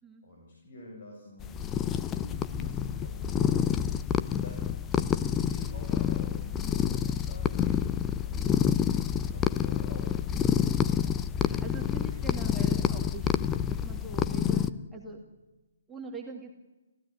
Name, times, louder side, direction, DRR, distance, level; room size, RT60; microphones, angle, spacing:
voice 1, 0.2-4.8 5.2-7.9 8.2-10.9 11.9-12.4 12.8-13.0, left 1 dB, 40° left, 0 dB, 7.3 m, -49 dB
sound 1, 1.4-14.7, left 9 dB, 15° left, 0.8 m, -28 dB
voice 2, 11.0-15.2 15.9-16.5, right 3 dB, 5° right, -1 dB, 2.5 m, -43 dB
30.0 x 15.5 x 9.6 m, 1.1 s
figure-of-eight pair, 140°, 0 cm